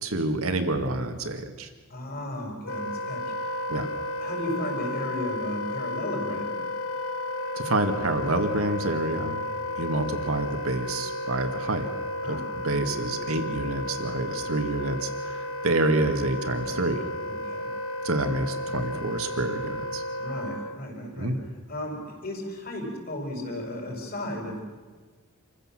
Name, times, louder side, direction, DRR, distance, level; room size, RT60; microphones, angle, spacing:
voice 1, 0.0-1.7 3.7-3.9 7.5-9.4 9.8-11.9 12.2-12.4 12.6-17.0 18.0-20.0 21.2-21.4, right 2 dB, 75° right, 7 dB, 2.0 m, -28 dB
voice 2, 1.9-3.8 4.2-6.5 12.2-12.4 17.2-17.7 20.2-21.3 21.7-24.6, left 1 dB, 45° left, 1 dB, 5.4 m, -35 dB
Wind instrument woodwind instrument, 2.6-20.9, left 1 dB, 80° left, 1.1 m, -33 dB
26.5 x 15.0 x 7.6 m, 1.4 s
head